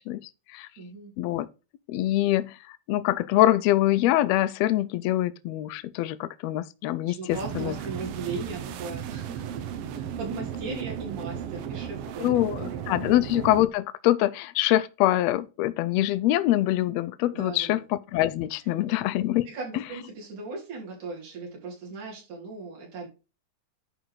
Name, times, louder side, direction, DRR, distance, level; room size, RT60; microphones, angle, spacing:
voice 1, 0.0-0.7 1.2-1.5 1.9-7.7 12.2-19.5, left 14 dB, 80° left, 1.6 m, -24 dB
voice 2, 0.8-1.1 7.0-12.8 13.0-13.1 17.3-17.8 18.9-19.0 19.5-23.1, right 3 dB, 90° right, 4.8 m, -38 dB
sound 1, 7.3-13.7, right 9 dB, 70° right, 1.5 m, -35 dB
10.5 x 4.0 x 4.8 m
omnidirectional pair, 3.4 m